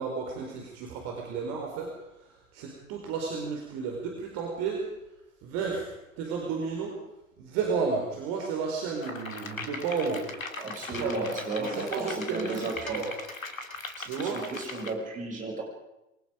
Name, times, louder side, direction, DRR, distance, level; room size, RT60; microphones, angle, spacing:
voice 1, 0.0-1.9 2.5-4.8 5.4-5.9 6.2-7.0 7.4-10.3 10.8-11.3 11.6-13.1 14.0-14.4, right 5 dB, 40° right, 1 dB, 4.6 m, -32 dB
sound 1, 9.0-14.9, left 3 dB, 75° left, 3.0 m, -39 dB
voice 2, 10.6-13.0 14.0-15.6, right 2 dB, 20° right, -1 dB, 7.4 m, -34 dB
27.5 x 23.5 x 5.2 m, 0.93 s
figure-of-eight pair, 100°, 41 cm